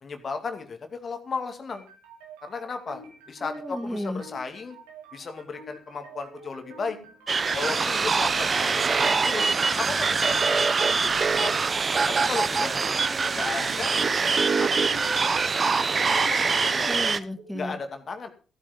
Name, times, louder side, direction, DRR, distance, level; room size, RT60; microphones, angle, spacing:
voice 1, 0.0-1.9 2.4-3.0 3.3-4.8 5.1-7.0 7.5-9.4 9.8-11.6 12.1-12.8 13.3-13.9 14.6-15.1 16.1-16.9 17.6-18.3, left 4 dB, 50° left, 6 dB, 2.4 m, -35 dB
sound 1, 1.7-17.7, right 3 dB, 85° right, 3.3 m, -47 dB
voice 2, 3.4-4.2 13.0-13.4 16.8-17.8, left 1 dB, ahead, 7 dB, 2.0 m, -34 dB
sound 2, 7.3-17.2, right 4 dB, 45° right, 1.1 m, -24 dB
15.0 x 9.2 x 5.2 m, 0.38 s
hypercardioid pair, 45°, 0 cm